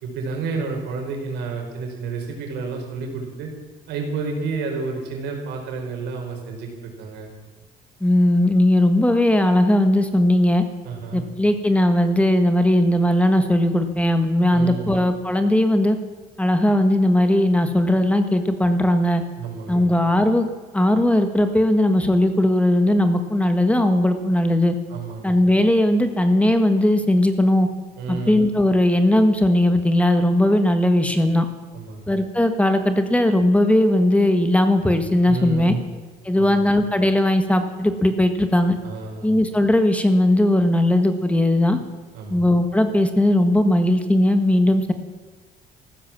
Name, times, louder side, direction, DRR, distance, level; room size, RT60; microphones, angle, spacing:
voice 1, 0.0-3.5 3.9-7.3 10.8-11.2 14.5-14.9 19.4-19.9 24.9-25.4 28.0-28.4 31.7-32.0 35.3-35.8 36.4-36.7 38.8-39.4 42.1-42.4, right 4 dB, 90° right, 2 dB, 4.5 m, -30 dB
voice 2, 8.0-10.6 11.1-16.0 16.4-19.2 19.7-20.5 20.7-24.7 25.2-27.7 28.1-31.4 32.1-35.7 36.2-38.8 39.2-41.8 42.3-44.9, left 1 dB, 10° left, 8 dB, 1.5 m, -18 dB
15.0 x 12.5 x 7.4 m, 1.4 s
cardioid pair, 110°, 17 cm